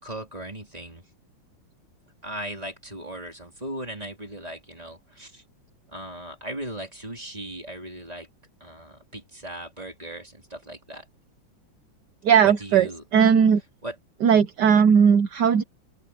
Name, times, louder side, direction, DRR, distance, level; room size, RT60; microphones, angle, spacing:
voice 1, 0.0-1.0 2.2-5.4 5.9-8.3 8.6-11.1 12.4-13.0 13.8-14.0, right 1 dB, 20° right, 3.7 m, -37 dB
voice 2, 12.2-13.6 14.2-15.6, right 7 dB, 65° right, 1.4 m, -18 dB
open air
omnidirectional pair, 2.1 m